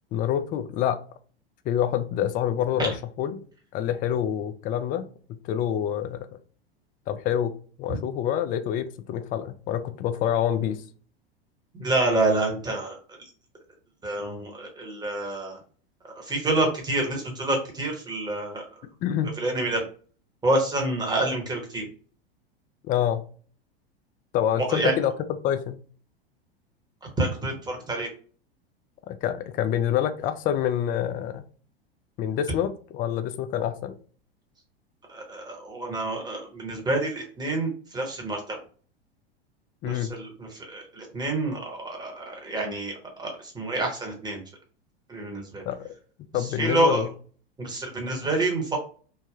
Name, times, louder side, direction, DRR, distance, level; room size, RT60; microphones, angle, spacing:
voice 1, 0.1-1.0 1.7-3.4 3.7-6.2 7.1-7.5 7.8-10.8 19.0-19.4 22.9-23.2 24.3-25.1 25.4-25.8 29.1-31.4 32.2-34.0 39.8-40.1 45.7-45.9 46.3-47.1, left 10 dB, 30° left, 10 dB, 0.3 m, -27 dB
voice 2, 11.7-12.9 14.0-15.6 16.2-18.6 19.4-19.8 20.4-21.8 24.6-24.9 27.2-28.1 35.1-38.6 39.8-42.9 43.2-44.4 45.1-45.6 46.6-47.1 47.6-48.8, right 2 dB, 15° right, 1 dB, 1.0 m, -27 dB
3.3 x 2.1 x 2.3 m, 0.42 s
hypercardioid pair, 95°, 31 cm